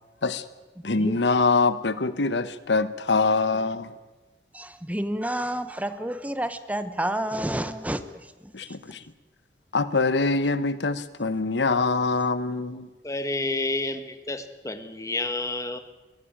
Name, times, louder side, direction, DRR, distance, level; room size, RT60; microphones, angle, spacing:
voice 1, 0.8-3.9 8.5-9.0 9.7-12.9, left 3 dB, 80° left, 1.1 m, -24 dB
voice 2, 4.5-8.0 8.7-8.8, right 1 dB, 10° right, 0.9 m, -29 dB
voice 3, 13.0-15.8, left 2 dB, 20° left, 1.5 m, -29 dB
23.5 x 16.0 x 8.8 m
head